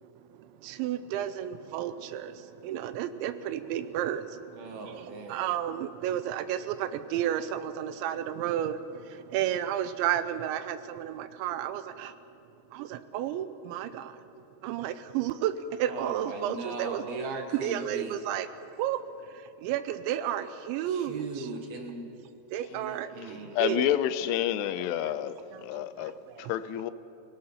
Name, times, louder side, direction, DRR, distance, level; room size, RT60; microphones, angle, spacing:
voice 1, 0.0-12.2 12.7-14.2 14.6-17.0 17.6-18.5 18.7-21.5 22.5-23.9 24.6-25.1 25.5-26.5, right 11 dB, 80° right, 2.9 m, -33 dB
voice 2, 4.6-5.5 15.8-18.2 20.8-22.1 22.7-23.6, right 3 dB, 60° right, 3.1 m, -38 dB
voice 3, 23.6-26.9, left 11 dB, 85° left, 3.2 m, -29 dB
28.0 x 18.0 x 5.7 m
omnidirectional pair, 5.4 m